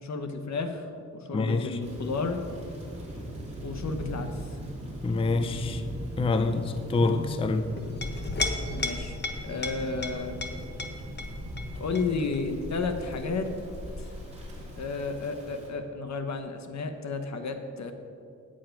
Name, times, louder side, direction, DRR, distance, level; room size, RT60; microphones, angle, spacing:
voice 1, 0.0-2.4 3.6-4.3 8.7-10.4 11.8-13.5 14.0-14.1 14.8-17.9, left 4 dB, 65° left, 1.0 m, -32 dB
voice 2, 1.3-1.8 5.0-5.8 6.2-7.7, left 3 dB, 20° left, 0.4 m, -26 dB
Thunder / Rain, 1.8-15.7, equal, 20° right, 2.5 m, -39 dB
Chink clink, 7.8-14.9, left 2 dB, 35° left, 1.0 m, -36 dB
9.0 x 7.6 x 5.7 m
wide cardioid pair, 105°, 30 cm